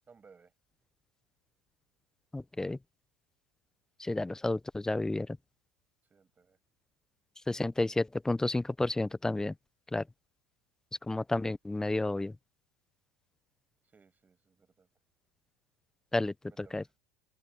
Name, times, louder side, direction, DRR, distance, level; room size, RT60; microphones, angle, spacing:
voice 1, 0.1-0.5 6.1-6.6 13.8-14.9 16.5-16.9, right 5 dB, 20° right, 6.7 m, -61 dB
voice 2, 2.3-2.8 4.0-5.4 7.5-9.5 9.9-10.0 11.1-12.3 16.1-16.8, left 2 dB, 5° left, 0.5 m, -31 dB
open air
supercardioid pair, 135°, 9 cm